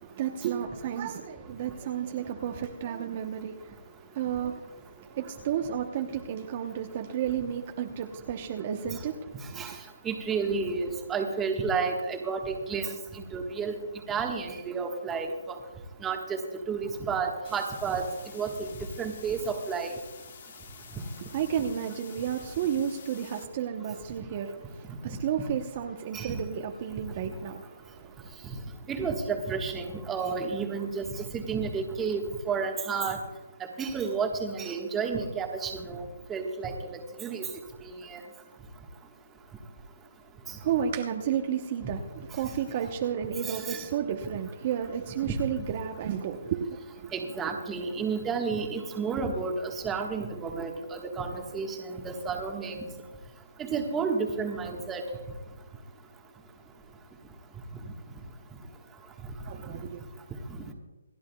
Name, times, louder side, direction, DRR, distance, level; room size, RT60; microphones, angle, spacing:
voice 1, 0.0-9.8 21.3-28.3 40.5-47.1 59.4-60.0, right 9 dB, 35° right, 0.9 m, -32 dB
voice 2, 10.0-12.9 13.3-13.7 14.1-15.6 16.0-16.4 16.7-18.1 18.3-18.7 19.0-19.9 26.1-26.3 28.9-31.0 31.3-32.2 32.5-33.2 33.8-36.0 36.3-36.7 37.2-37.5 37.8-38.2 43.4-43.8 45.3-45.4 47.1-52.9 53.6-55.0, right 5 dB, 10° right, 1.4 m, -31 dB
sound 1, 17.4-23.4, left 6 dB, 55° left, 1.5 m, -49 dB
28.0 x 10.5 x 2.3 m
hypercardioid pair, 155°, 0 cm